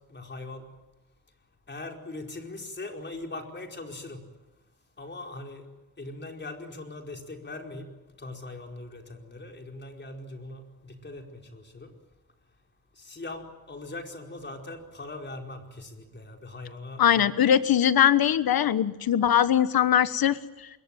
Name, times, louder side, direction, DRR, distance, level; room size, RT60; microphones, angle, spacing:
voice 1, 0.1-0.7 1.7-4.2 5.0-5.7 6.0-7.9 8.2-11.9 13.0-17.3, left 2 dB, 30° left, 3 dB, 4.8 m, -40 dB
voice 2, 17.0-20.4, left 10 dB, 85° left, 13 dB, 1.3 m, -21 dB
26.5 x 22.5 x 9.2 m, 1.0 s
wide cardioid pair, 120°, 35 cm